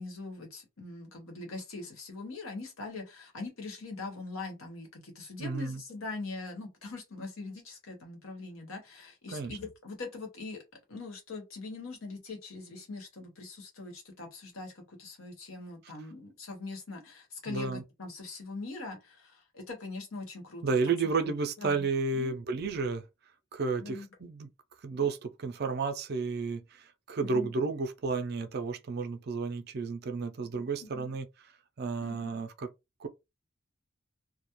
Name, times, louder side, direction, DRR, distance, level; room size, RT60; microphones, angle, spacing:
voice 1, 0.0-10.6 10.9-20.6 21.2-21.3 21.6-21.8 22.2-22.3 23.8-24.1 27.2-27.5 30.8-31.1 32.0-32.4, left 3 dB, 85° left, 1.0 m, -42 dB
voice 2, 5.4-5.8 9.3-9.6 15.8-15.9 17.5-17.8 20.6-23.0 23.5-24.5 24.8-31.3 31.8-32.7 33.0-33.1, right 4 dB, 50° right, 0.4 m, -32 dB
2.3 x 2.1 x 2.9 m
head